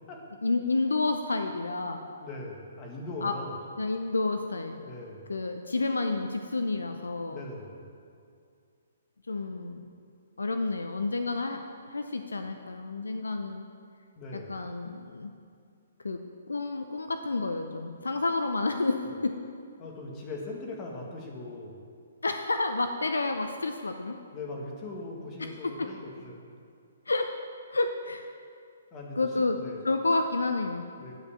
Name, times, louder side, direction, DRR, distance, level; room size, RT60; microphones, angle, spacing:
voice 1, 0.4-2.0 3.2-3.3 3.8-4.8 5.3-7.4 9.3-9.8 10.4-11.6 11.9-13.7 14.5-15.3 16.0-16.2 16.5-19.4 22.2-24.2 25.4-25.9 27.1-27.3 27.7-28.3 29.2-29.6 29.8-30.9, left 3 dB, 80° left, 6 dB, 0.5 m, -30 dB
voice 2, 2.2-3.6 4.8-5.3 7.3-7.9 14.2-14.6 19.8-21.8 24.3-26.5 28.9-29.9 31.0-31.1, left 2 dB, 25° left, -1 dB, 1.8 m, -40 dB
9.6 x 5.2 x 7.0 m, 2.3 s
figure-of-eight pair, 130°, 0 cm